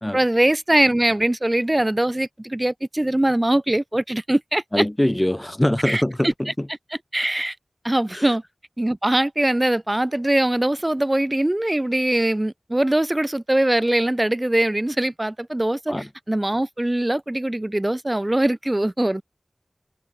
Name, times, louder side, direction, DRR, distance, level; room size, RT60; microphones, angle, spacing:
voice 1, 0.1-4.8 5.8-6.5 7.1-7.5 7.8-8.4 8.8-19.2, right 1 dB, 30° right, 1.0 m, -22 dB
voice 2, 4.7-6.7 8.1-8.3 15.9-16.1, left 1 dB, 20° left, 2.5 m, -23 dB
wide cardioid pair, 50°, 0 cm